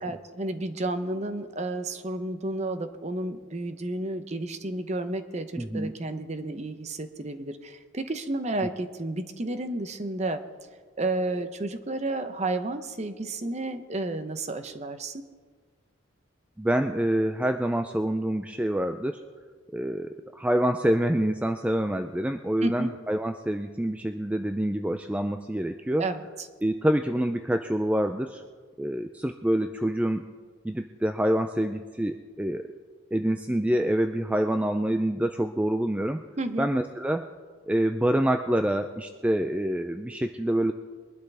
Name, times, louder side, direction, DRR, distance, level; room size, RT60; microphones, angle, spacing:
voice 1, 0.0-10.4 11.0-15.3 22.6-22.9 26.0-26.5 36.4-36.7, right 2 dB, 35° right, 9 dB, 0.8 m, -31 dB
voice 2, 5.6-5.9 16.6-19.2 19.7-26.1 26.6-28.4 28.8-30.2 30.6-32.6 33.1-36.2 36.6-37.3 37.7-40.7, right 1 dB, 5° right, 7 dB, 0.3 m, -26 dB
22.0 x 11.5 x 3.4 m, 1.5 s
head